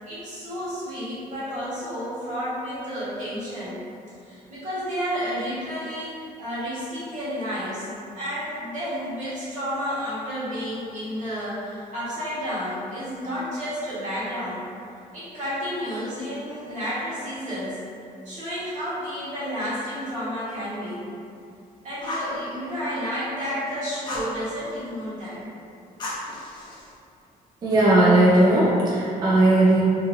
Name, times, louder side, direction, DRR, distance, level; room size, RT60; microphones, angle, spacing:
voice 1, 0.0-3.8 4.2-7.9 8.1-14.6 15.1-17.8 18.2-21.1 21.8-25.4, equal, 55° right, -12 dB, 1.2 m, -31 dB
Fire, 22.0-22.4 24.0-24.3 26.0-26.9, left 1 dB, 30° left, 0.5 m, -33 dB
voice 2, 27.6-29.8, right 1 dB, 30° right, -7 dB, 0.3 m, -17 dB
2.7 x 2.5 x 2.5 m, 2.5 s
wide cardioid pair, 170°, 15 cm